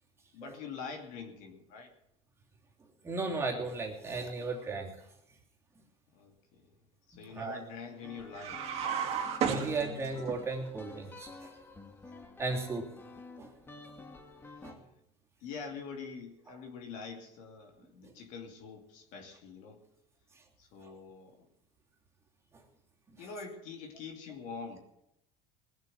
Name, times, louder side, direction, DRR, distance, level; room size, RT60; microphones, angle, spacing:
voice 1, 0.3-1.9 6.1-6.7 7.1-8.7 14.4-14.7 15.4-19.8 20.6-21.5 23.2-24.8, left 5 dB, 60° left, 4 dB, 2.7 m, -45 dB
voice 2, 3.0-4.9 7.3-7.6 9.5-11.5 12.4-12.9 13.4-13.5 14.6-14.8 18.0-18.1, right 3 dB, 20° right, -1 dB, 3.0 m, -35 dB
sound 1, 8.0-14.7, left 3 dB, 15° left, 1.7 m, -50 dB
sound 2, 8.3-10.4, right 8 dB, 45° right, 2.7 m, -33 dB
19.5 x 8.2 x 7.8 m, 0.84 s
cardioid pair, 135°, 14 cm